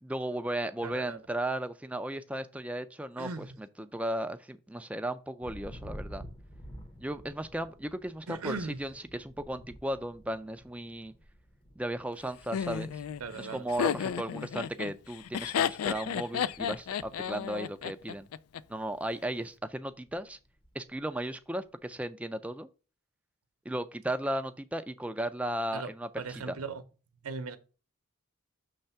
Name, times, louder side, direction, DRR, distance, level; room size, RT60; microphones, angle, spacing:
voice 1, 0.0-3.5 3.8-6.2 7.0-11.1 11.8-13.0 13.4-18.3 18.7-20.4 20.7-22.7 23.7-26.5, right 1 dB, 5° right, 0.4 m, -35 dB
voice 2, 0.8-1.2 3.2-3.5 8.3-8.8 13.2-13.6 25.7-25.9 26.2-26.8 27.2-27.6, right 4 dB, 80° right, 0.8 m, -38 dB
Thunder, 5.4-18.3 18.6-19.2 19.5-21.0, equal, 25° left, 0.7 m, -51 dB
Laughter, 12.5-18.6, left 8 dB, 80° left, 0.3 m, -32 dB
6.6 x 3.3 x 5.6 m
head